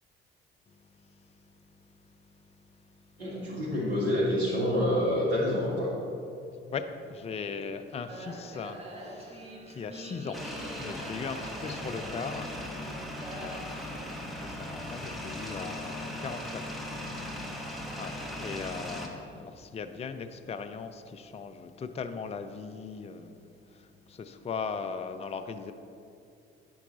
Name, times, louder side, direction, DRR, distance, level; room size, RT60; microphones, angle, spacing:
voice 1, 0.7-3.0 6.7-17.0 17.3-25.7, left 5 dB, 20° left, 0.5 m, -40 dB
voice 2, 3.2-5.9, left 1 dB, 85° right, 1.7 m, -27 dB
sound 1, 8.1-13.6, right 1 dB, 20° right, 1.3 m, -44 dB
sound 2, 10.3-19.1, left 1 dB, ahead, 1.2 m, -38 dB
9.3 x 6.0 x 3.9 m
figure-of-eight pair, 50°, 30 cm